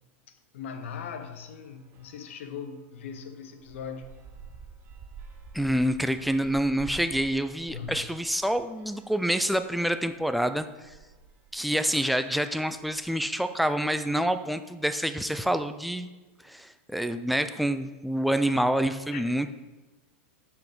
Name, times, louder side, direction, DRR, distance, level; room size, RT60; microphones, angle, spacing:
voice 1, 0.3-4.1 7.7-8.0 18.5-18.8 19.1-19.4, left 6 dB, 80° left, 8 dB, 0.9 m, -40 dB
sound 1, 0.7-2.5 3.0-14.5, right 4 dB, 35° right, 0.9 m, -51 dB
voice 2, 5.5-10.9 11.5-16.1 16.4-19.5, right 1 dB, ahead, 9 dB, 0.3 m, -27 dB
7.6 x 4.9 x 5.4 m, 1.1 s
supercardioid pair, 150°, 7 cm